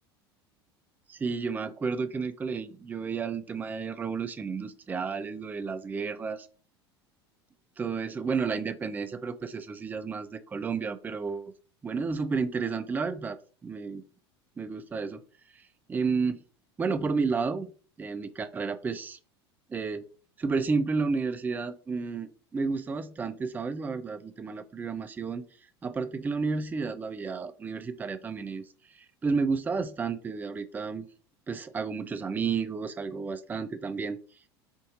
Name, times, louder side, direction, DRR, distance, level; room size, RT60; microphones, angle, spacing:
voice 1, 1.1-6.4 7.8-11.5 11.8-13.4 13.6-14.0 14.6-15.2 15.9-16.4 16.8-17.7 18.0-19.2 19.7-20.0 20.4-25.4 25.8-28.6 29.2-31.1 31.5-34.2, right 5 dB, 15° right, 11 dB, 0.4 m, -31 dB
5.8 x 2.5 x 2.7 m, 0.38 s
figure-of-eight pair, 75°, 13 cm